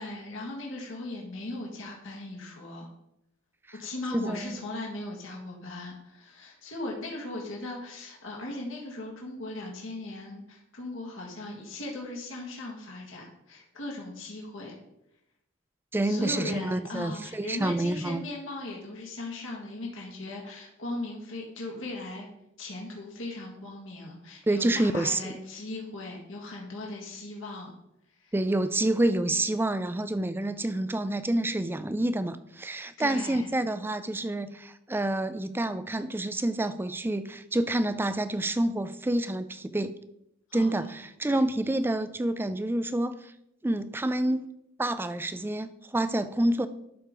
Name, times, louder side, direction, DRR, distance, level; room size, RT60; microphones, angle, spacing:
voice 1, 0.0-2.9 3.8-14.8 16.0-22.3 22.6-27.7 28.2-28.3 33.0-33.5 40.5-40.9 41.3-41.4, left 2 dB, 65° left, -1 dB, 1.8 m, -38 dB
voice 2, 4.1-4.6 15.9-18.2 24.5-25.3 28.3-39.9 40.5-43.3 43.6-44.5 44.8-46.7, right 1 dB, 10° right, 13 dB, 0.3 m, -28 dB
12.0 x 4.9 x 3.7 m, 0.81 s
head